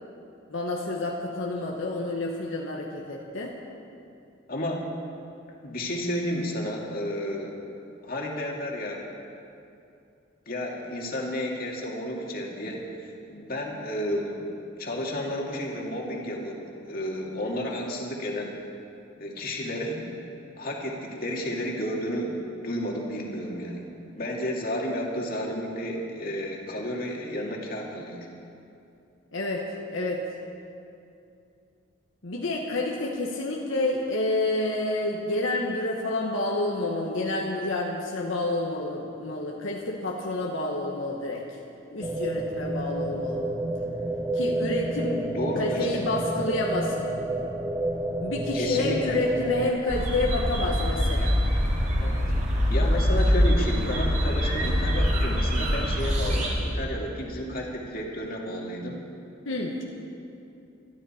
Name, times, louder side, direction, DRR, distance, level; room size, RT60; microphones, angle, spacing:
voice 1, 0.5-3.5 29.3-30.2 32.2-41.4 41.9-43.4 44.3-45.3 45.6-47.1 48.2-51.4 59.4-59.8, left 2 dB, 75° left, -2 dB, 1.5 m, -29 dB
voice 2, 4.5-4.8 5.6-7.6 8.0-9.0 10.5-14.4 14.8-18.6 19.2-20.0 20.6-23.9 24.1-28.3 45.3-46.0 48.5-49.2 52.0-52.3 52.7-59.0, equal, 45° left, -1 dB, 2.3 m, -32 dB
sound 1, 42.0-49.7, right 1 dB, 15° right, 0.7 m, -30 dB
sound 2, 49.9-56.5, equal, 40° right, 3.7 m, -24 dB
23.0 x 13.5 x 4.4 m, 2.6 s
head